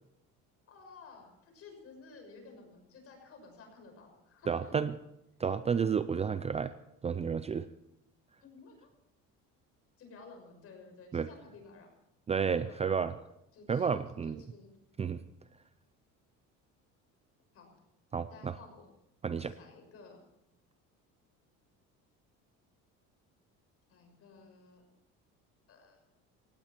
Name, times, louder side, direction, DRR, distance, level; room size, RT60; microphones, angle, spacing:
voice 1, 0.7-4.8 8.4-8.9 10.0-11.9 12.6-12.9 13.5-13.9 14.2-14.7 17.5-17.7 18.3-18.9 19.3-20.2 23.9-24.8 25.7-26.0, left 4 dB, 50° left, 4 dB, 6.1 m, -54 dB
voice 2, 4.5-4.9 5.4-6.7 7.0-7.7 11.1-11.3 12.3-13.1 13.7-14.4 15.0-15.2 18.1-18.6 19.2-19.5, right 6 dB, 20° right, 13 dB, 0.5 m, -31 dB
18.0 x 16.5 x 4.5 m, 0.83 s
cardioid pair, 130°, 31 cm